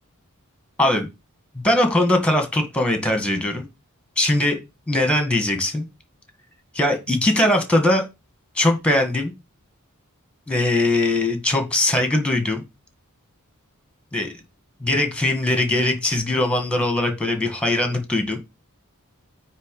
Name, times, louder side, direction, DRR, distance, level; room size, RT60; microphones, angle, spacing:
voice 1, 1.6-3.6 4.2-4.6 4.9-5.8 6.8-8.0 8.6-9.3 10.5-12.6 14.1-14.3 14.8-18.4, left 1 dB, 5° left, 5 dB, 1.9 m, -20 dB
9.3 x 3.4 x 6.6 m, 0.24 s
head